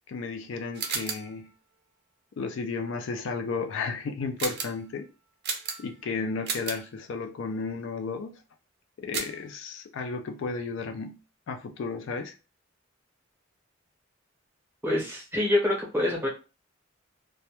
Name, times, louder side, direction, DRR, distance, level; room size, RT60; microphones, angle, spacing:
voice 1, 0.1-1.5 2.4-5.1 5.8-8.4 9.0-11.2 11.5-12.3, left 4 dB, 65° left, 0.3 m, -33 dB
sound 1, 0.7-1.3 4.4-4.8 5.4-6.0 6.4-6.9 9.1-9.5, right 5 dB, 50° right, 0.5 m, -33 dB
voice 2, 14.8-16.3, left 1 dB, 10° right, 0.7 m, -26 dB
2.1 x 2.1 x 2.8 m
head